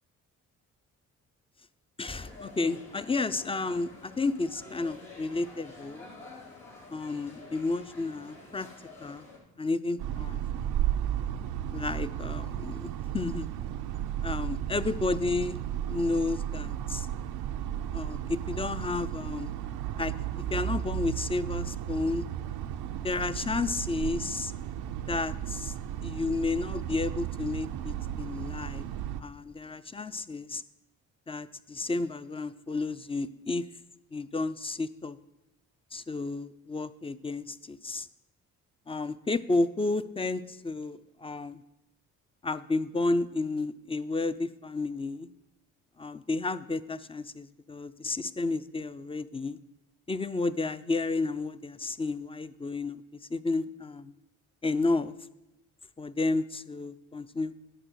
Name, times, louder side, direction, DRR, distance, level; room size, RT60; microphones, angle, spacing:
sound 1, 2.0-9.4, left 3 dB, 85° left, 3.9 m, -49 dB
voice 1, 2.0-6.1 6.9-8.7 9.0-9.3 9.6-10.4 11.7-13.5 14.2-15.6 15.9-17.1 17.9-19.5 20.0-20.1 20.5-22.3 23.0-24.5 25.1-25.7 26.0-28.9 29.2-30.6 31.3-33.6 34.1-35.2 35.9-38.1 38.9-41.6 42.4-45.3 46.0-49.6 50.1-53.0 53.3-54.1 54.6-55.1 56.0-57.5, left 3 dB, 15° left, 14 dB, 0.6 m, -31 dB
sound 2, 10.0-29.2, right 11 dB, 80° right, 0.7 m, -34 dB
11.0 x 5.5 x 6.9 m, 0.95 s
supercardioid pair, 60°, 36 cm